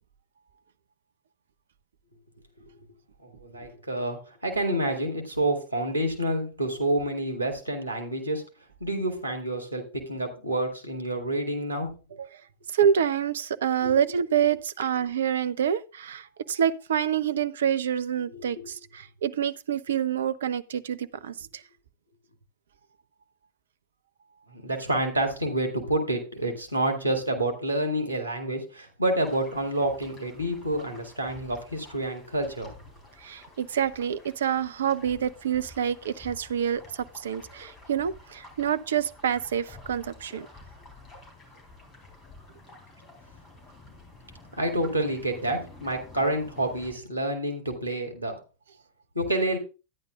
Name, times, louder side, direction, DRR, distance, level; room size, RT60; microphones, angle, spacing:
voice 1, 3.2-8.4 8.8-11.9 13.8-13.9 18.3-18.7 24.5-32.7 44.6-48.4 49.1-49.6, right 1 dB, 90° left, 2.0 m, -28 dB
voice 2, 12.7-21.6 33.2-40.5 44.6-44.7, right 8 dB, 65° right, 0.5 m, -27 dB
sound 1, 29.2-46.9, left 2 dB, 25° left, 3.7 m, -50 dB
13.0 x 9.5 x 2.4 m
figure-of-eight pair, 90°, 0 cm